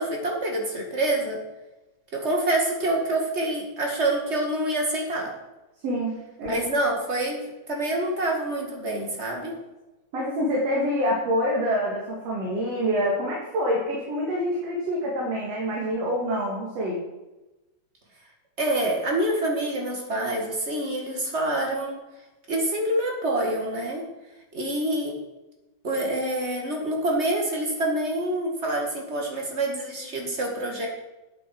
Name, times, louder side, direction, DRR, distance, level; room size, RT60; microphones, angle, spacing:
voice 1, 0.0-1.4 2.1-5.3 6.4-7.4 7.7-9.5 18.6-22.0 22.5-24.1 24.5-25.1 25.8-30.9, right 1 dB, 25° right, 0 dB, 1.9 m, -26 dB
voice 2, 5.8-6.6 10.1-17.0, equal, 60° right, -3 dB, 3.0 m, -26 dB
12.0 x 8.7 x 4.6 m, 1.1 s
omnidirectional pair, 3.4 m